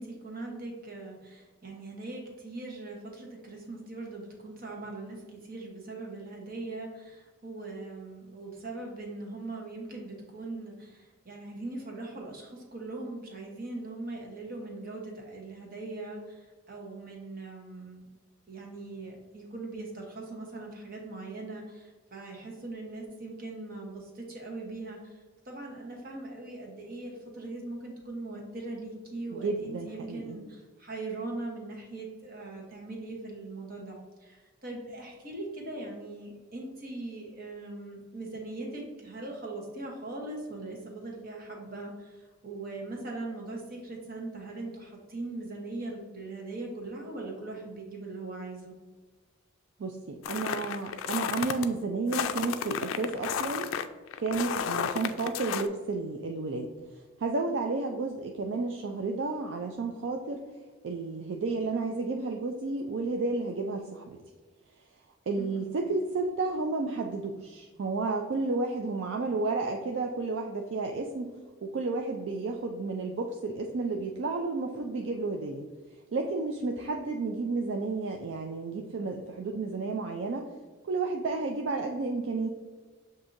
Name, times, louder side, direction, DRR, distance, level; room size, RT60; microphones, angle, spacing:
voice 1, 0.0-18.1 18.5-25.2 25.4-48.7 65.3-65.6, right 2 dB, 45° right, 0 dB, 1.0 m, -40 dB
voice 2, 29.3-30.4 49.8-53.7 54.2-56.7 57.2-60.4 60.8-64.2 65.3-71.3 71.6-75.7 76.1-80.4 80.8-82.5, right 3 dB, 70° right, 3 dB, 0.4 m, -32 dB
sound 1, 50.3-51.7 52.1-55.7, left 8 dB, 85° left, 0.3 m, -32 dB
7.1 x 2.6 x 2.6 m, 1.4 s
head